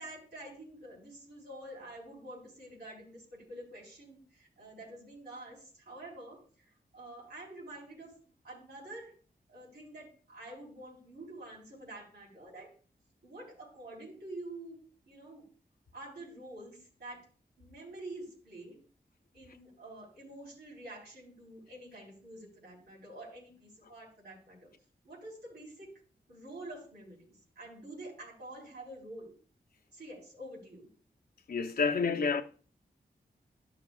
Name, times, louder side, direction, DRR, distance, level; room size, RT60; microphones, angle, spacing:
voice 1, 0.0-6.4 6.9-8.2 8.4-9.1 9.5-12.7 13.2-15.5 15.9-17.2 17.6-18.8 19.3-24.7 25.0-25.9 26.3-29.4 29.9-30.9, right 1 dB, 80° right, 4.0 m, -47 dB
voice 2, 31.5-32.4, left 5 dB, 60° left, 0.7 m, -29 dB
13.0 x 5.8 x 2.3 m
cardioid pair, 60°, 17 cm